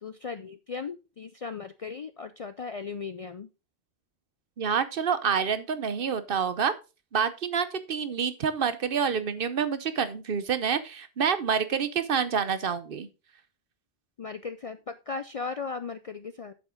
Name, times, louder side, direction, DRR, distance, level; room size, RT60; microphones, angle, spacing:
voice 1, 0.0-3.5 14.2-16.5, left 5 dB, 50° left, 11 dB, 0.4 m, -37 dB
voice 2, 4.6-6.7 7.1-13.1, right 6 dB, 60° right, 12 dB, 0.9 m, -27 dB
8.1 x 7.3 x 3.7 m, 0.30 s
omnidirectional pair, 1.1 m